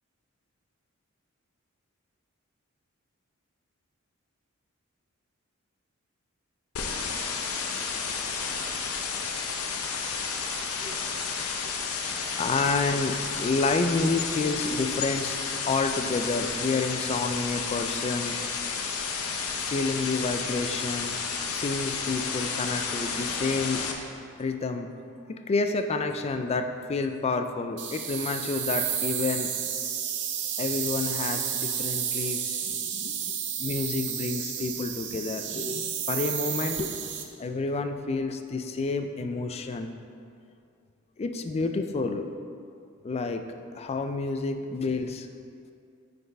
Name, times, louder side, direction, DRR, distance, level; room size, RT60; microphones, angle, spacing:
sound 1, 6.8-23.9, left 5 dB, 90° left, 0.6 m, -31 dB
voice 1, 10.8-11.8 12.4-15.4 15.7-18.4 19.7-21.2 21.5-23.9 24.4-24.9 25.3-29.5 30.6-33.3 33.6-36.9 37.4-39.9 41.2-42.3 43.0-43.4 43.7-45.3, left 3 dB, 30° left, 7 dB, 0.3 m, -29 dB
sound 2, 27.8-37.2, right 9 dB, 55° right, 0.5 m, -31 dB
9.1 x 4.2 x 3.3 m, 2.4 s
head